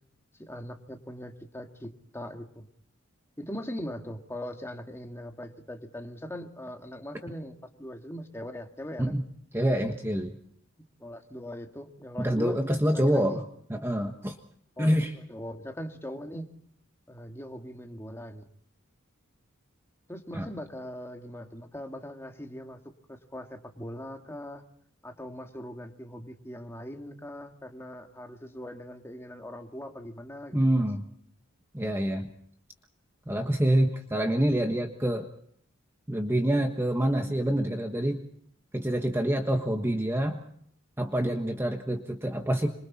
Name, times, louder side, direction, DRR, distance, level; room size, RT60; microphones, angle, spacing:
voice 1, 0.4-2.7 3.4-9.2 11.0-12.6 12.9-13.4 14.8-16.5 17.1-18.5 20.1-22.8 23.1-24.6 25.0-30.8, equal, 15° left, 3 dB, 2.1 m, -40 dB
voice 2, 9.5-10.4 12.2-13.4 13.7-14.4 14.8-15.1 20.3-20.5 30.5-31.0 31.7-32.3 33.3-35.3 36.1-38.3 38.7-40.4 41.0-42.7, right 1 dB, 10° right, 4 dB, 1.3 m, -26 dB
27.0 x 26.0 x 4.3 m, 0.66 s
head